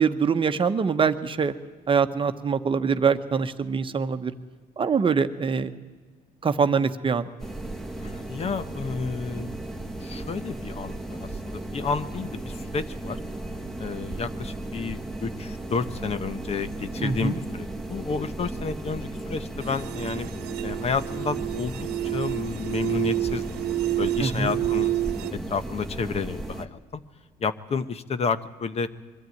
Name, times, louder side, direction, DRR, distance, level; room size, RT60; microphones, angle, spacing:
voice 1, 0.0-1.5 1.9-4.3 4.8-5.7 6.4-7.3 17.0-17.4 24.2-24.5, right 6 dB, 30° right, 9 dB, 1.0 m, -24 dB
sound 1, 7.4-26.7, right 1 dB, ahead, 1.2 m, -35 dB
voice 2, 8.0-9.5 10.0-13.2 13.8-20.3 20.6-23.4 24.0-24.9 25.3-27.0 27.4-28.9, left 5 dB, 40° left, 13 dB, 0.8 m, -31 dB
sound 2, 19.6-25.3, right 15 dB, 85° right, 0.6 m, -29 dB
22.5 x 13.0 x 9.3 m, 1.4 s
cardioid pair, 110°, 17 cm